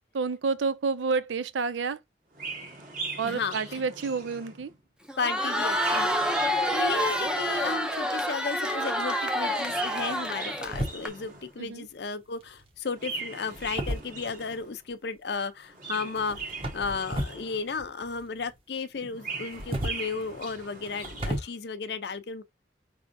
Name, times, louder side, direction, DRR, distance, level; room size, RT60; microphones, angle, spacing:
voice 1, 0.1-2.0 3.2-4.7 11.6-11.9, right 4 dB, 85° right, 0.5 m, -29 dB
Chirp tweet, 2.3-4.8 5.5-7.9 9.5-11.7 12.9-14.8 15.6-17.9 18.9-21.5, right 3 dB, 45° right, 1.7 m, -41 dB
voice 2, 3.2-3.6 5.2-16.4 16.7-22.4, left 4 dB, 65° left, 0.6 m, -34 dB
Crowd, 5.1-11.1, equal, 5° right, 0.6 m, -28 dB
sound 1, 10.6-11.4 12.4-12.8 13.5-14.6 16.1-17.5 17.7-18.6 19.4-21.4, equal, 30° right, 1.1 m, -34 dB
5.4 x 3.5 x 2.6 m
head